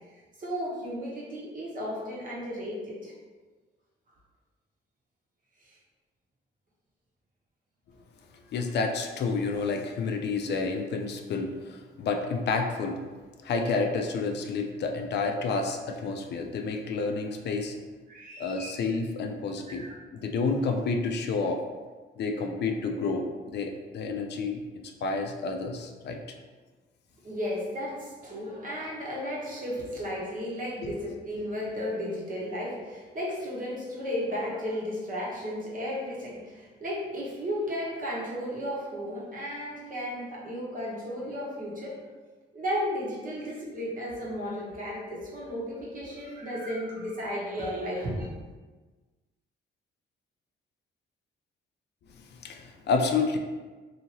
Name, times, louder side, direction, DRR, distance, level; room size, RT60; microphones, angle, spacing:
voice 1, 0.4-3.1 5.6-5.8 18.1-18.7 19.7-20.0 27.2-42.0 42.5-48.3, equal, 45° right, -5 dB, 1.0 m, -34 dB
voice 2, 8.5-13.0 13.4-17.7 18.4-19.9 20.1-21.6 22.2-23.3 23.5-24.6 25.0-26.2 30.8-30.9 52.4-53.4, left 4 dB, 60° left, 3 dB, 0.4 m, -29 dB
2.8 x 2.6 x 2.8 m, 1.3 s
cardioid pair, 90°, 20 cm